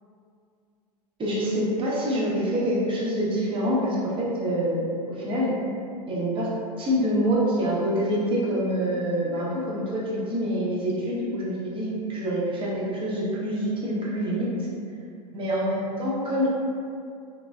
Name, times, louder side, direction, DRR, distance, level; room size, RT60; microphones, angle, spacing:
voice 1, 1.2-4.8 5.1-5.6 6.1-6.5 6.8-14.5 15.3-16.5, equal, 25° right, -6 dB, 0.8 m, -26 dB
3.1 x 2.1 x 2.3 m, 2.3 s
hypercardioid pair, 100°, 21 cm